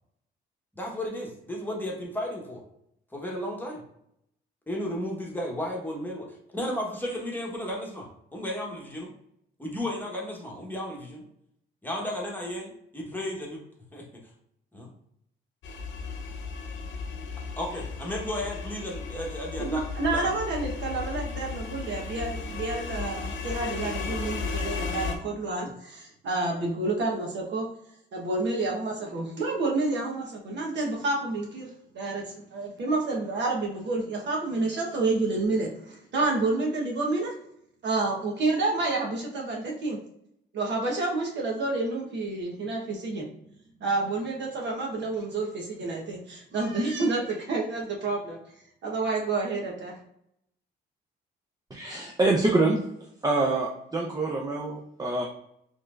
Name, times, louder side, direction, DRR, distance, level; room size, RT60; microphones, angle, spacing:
voice 1, 0.7-2.6 3.1-3.8 4.7-9.1 9.6-11.3 11.8-13.6 13.9-14.2 14.7-14.9 17.6-19.8 20.1-20.3, left 1 dB, 10° left, -2 dB, 1.2 m, -34 dB
sound 1, 15.6-25.2, left 4 dB, 70° left, 0.7 m, -35 dB
voice 2, 19.6-27.7 28.1-31.7 31.9-37.3 37.8-40.0 40.5-43.3 43.8-48.4 48.8-49.9, right 3 dB, 65° right, -1 dB, 1.1 m, -29 dB
voice 3, 51.7-52.8 53.2-55.2, right 2 dB, 20° right, -1 dB, 0.6 m, -25 dB
4.3 x 3.3 x 2.5 m, 0.75 s
cardioid pair, 90°, 20 cm